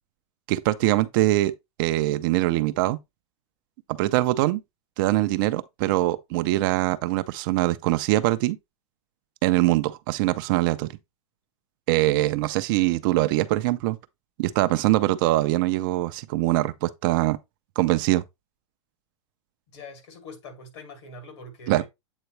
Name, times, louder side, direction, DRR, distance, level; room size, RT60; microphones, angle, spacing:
voice 1, 0.5-1.5 1.8-3.0 3.9-4.6 5.0-8.6 9.4-10.9 11.9-14.0 14.4-17.4 17.8-18.2 21.7-21.8, right 17 dB, 45° right, 0.5 m, -23 dB
voice 2, 19.7-21.9, left 2 dB, 60° left, 2.8 m, -43 dB
8.1 x 3.8 x 3.2 m
supercardioid pair, 150°, 16 cm